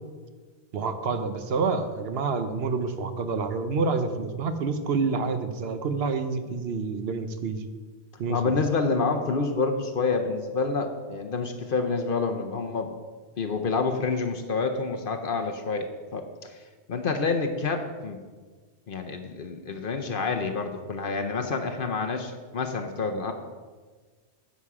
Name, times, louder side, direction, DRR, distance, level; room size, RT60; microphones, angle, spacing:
voice 1, 0.7-7.7 8.2-8.5, right 4 dB, 65° right, 9 dB, 1.0 m, -28 dB
voice 2, 8.3-12.9 13.4-18.2 18.9-23.3, left 4 dB, 55° left, 5 dB, 0.9 m, -28 dB
9.9 x 7.3 x 4.8 m, 1.4 s
omnidirectional pair, 1.2 m